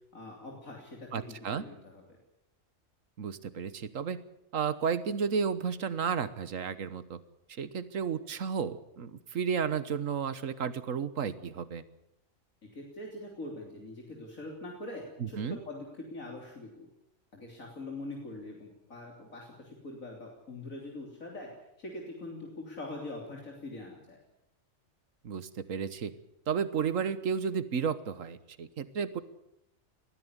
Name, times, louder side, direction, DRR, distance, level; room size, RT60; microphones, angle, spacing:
voice 1, 0.1-2.2 12.6-16.9 17.3-21.5 21.8-24.2, left 2 dB, 85° left, 0 dB, 3.8 m, -43 dB
voice 2, 1.1-1.6 3.2-4.2 4.5-7.2 7.5-11.8 15.2-15.6 25.2-26.1 26.5-29.2, right 6 dB, 75° right, 14 dB, 1.6 m, -32 dB
20.5 x 15.0 x 9.8 m, 0.82 s
omnidirectional pair, 1.4 m